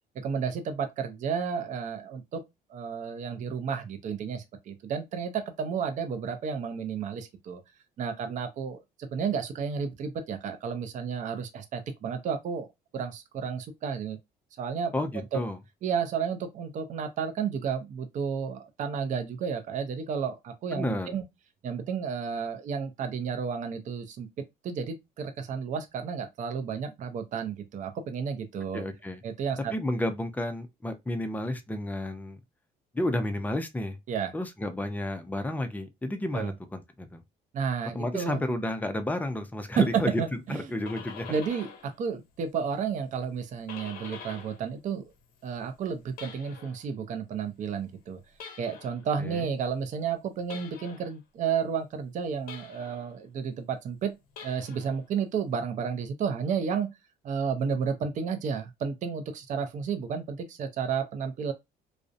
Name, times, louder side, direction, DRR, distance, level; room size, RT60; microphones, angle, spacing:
voice 1, 0.2-2.4 2.7-7.6 8.0-12.7 12.9-14.2 14.6-14.9 15.3-15.4 15.8-21.2 21.6-24.3 24.6-28.8 29.2-29.7 34.1-34.3 36.3-36.5 37.5-38.4 39.8-40.6 41.3-45.0 45.4-48.2 48.6-54.1 54.4-56.9 57.2-61.5, right 6 dB, 45° right, 0.5 m, -32 dB
voice 2, 14.9-15.6 20.7-21.1 28.7-29.2 29.7-32.4 32.9-34.0 34.3-37.2 37.9-40.2 40.5-41.3 49.2-49.5, left 1 dB, 10° left, 0.4 m, -31 dB
sound 1, 40.6-42.0 42.3-44.7 45.0-46.9 48.3-49.1 50.5-51.1 52.5-53.2 54.2-55.0, left 6 dB, 60° left, 0.6 m, -46 dB
2.5 x 2.0 x 2.5 m
cardioid pair, 110°, 17 cm